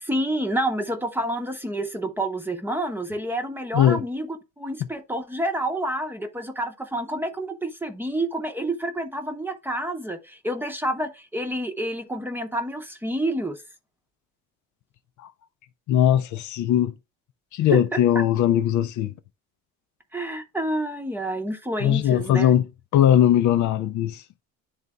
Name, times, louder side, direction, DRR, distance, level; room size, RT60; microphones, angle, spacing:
voice 1, 0.0-13.6 17.7-18.2 20.1-22.5, right 1 dB, 5° right, 0.8 m, -29 dB
voice 2, 15.9-16.9 17.5-19.1 21.8-22.7 22.9-24.2, left 11 dB, 60° left, 0.5 m, -20 dB
11.0 x 3.9 x 2.2 m
cardioid pair, 155°, 34 cm